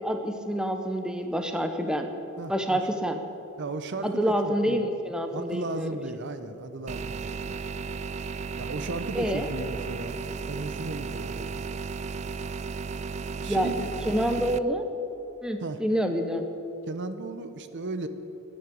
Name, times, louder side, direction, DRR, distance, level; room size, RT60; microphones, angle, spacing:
voice 1, 0.0-2.1 2.5-3.2 4.0-6.0 9.1-9.5 13.5-13.7 14.1-14.9 15.4-16.5, equal, 5° right, 6 dB, 0.8 m, -27 dB
voice 2, 2.4-2.8 3.6-4.8 5.3-7.6 8.6-11.7 13.3-13.9 15.6-15.8 16.9-18.1, right 3 dB, 55° right, 10 dB, 0.7 m, -36 dB
sound 1, 6.9-14.6, right 4 dB, 30° right, 0.3 m, -34 dB
11.0 x 10.0 x 8.5 m, 2.9 s
head